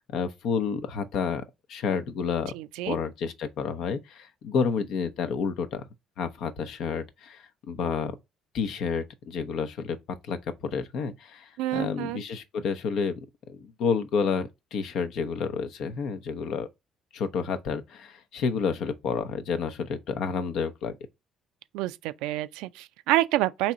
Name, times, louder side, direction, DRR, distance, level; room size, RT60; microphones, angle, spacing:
voice 1, 0.1-1.4 1.7-2.5 2.9-5.8 6.2-8.1 8.5-10.0 10.3-10.4 10.7-13.1 13.5-16.7 17.1-20.9, left 6 dB, 65° left, 0.7 m, -30 dB
voice 2, 2.5-3.0 11.6-12.2 21.7-23.7, right 16 dB, 75° right, 0.3 m, -28 dB
4.0 x 2.9 x 4.7 m
hypercardioid pair, 55°, 0 cm